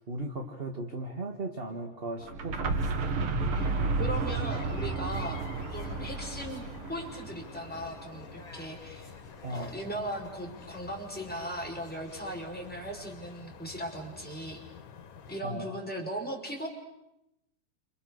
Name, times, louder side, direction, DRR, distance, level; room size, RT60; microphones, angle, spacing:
voice 1, 0.1-2.8 9.4-9.7 15.4-15.7, right 2 dB, 25° right, 3 dB, 1.5 m, -37 dB
sound 1, 2.2-8.0, right 3 dB, 55° right, 2.0 m, -32 dB
sound 2, 2.6-13.1, left 3 dB, 30° left, 4.9 m, -54 dB
sound 3, 3.5-15.4, left 6 dB, 90° left, 3.1 m, -49 dB
voice 2, 3.5-5.4 5.7-6.6 6.9-9.1 9.5-14.6 15.3-16.7, right 1 dB, 5° left, -1 dB, 5.4 m, -38 dB
29.5 x 28.0 x 6.7 m, 0.86 s
omnidirectional pair, 3.3 m